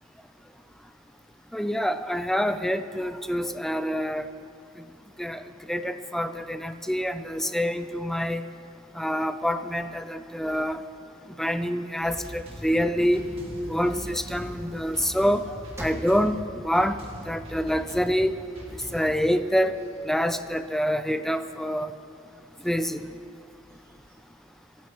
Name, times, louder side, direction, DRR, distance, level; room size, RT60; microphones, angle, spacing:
voice 1, 1.5-4.3 5.2-8.5 8.9-10.8 11.4-13.2 13.7-17.0 17.3-18.4 18.7-19.8 20.0-21.9 22.6-23.1, equal, ahead, 10 dB, 0.5 m, -26 dB
sound 1, 12.0-19.2, equal, 30° right, 2.0 m, -43 dB
sound 2, 12.8-18.0 18.4-18.5 18.9-20.9 21.5-22.0 22.6-22.7 23.0-23.1 23.6-24.2, equal, 15° right, 1.5 m, -44 dB
26.0 x 13.5 x 3.1 m, 2.5 s
head